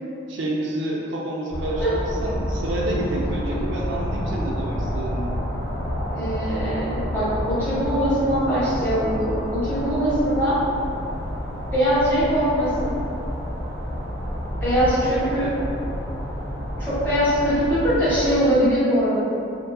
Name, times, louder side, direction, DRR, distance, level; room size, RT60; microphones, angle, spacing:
voice 1, 0.3-5.3, right 1 dB, 70° right, -3 dB, 0.4 m, -28 dB
sound 1, 1.5-18.4, equal, 55° left, 0.8 m, -29 dB
voice 2, 6.1-10.6 11.7-13.0 14.6-15.6 16.8-19.2, equal, 10° left, -13 dB, 0.9 m, -22 dB
2.5 x 2.3 x 2.3 m, 2.5 s
head